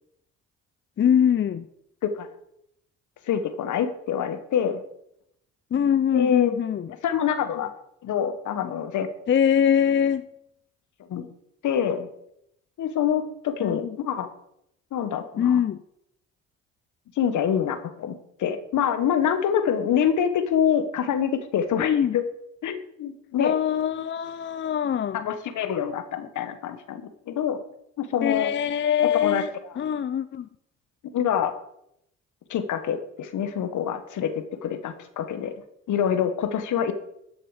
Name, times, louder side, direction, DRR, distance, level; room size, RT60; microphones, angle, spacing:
voice 1, 1.0-1.7 5.7-6.9 9.3-10.3 13.6-14.0 15.4-15.8 21.8-22.2 23.4-25.3 28.2-29.5 29.8-30.5, left 8 dB, 35° left, 0.5 m, -23 dB
voice 2, 3.3-4.8 6.1-6.5 7.0-7.7 8.0-9.1 11.1-11.3 11.6-12.1 12.8-14.3 14.9-15.6 17.2-22.2 22.6-23.5 25.1-27.6 28.0-28.5 29.2-29.4 31.1-31.5 32.5-35.5 35.9-36.9, left 8 dB, 65° left, 1.3 m, -26 dB
13.0 x 6.6 x 5.0 m
supercardioid pair, 60°, 32 cm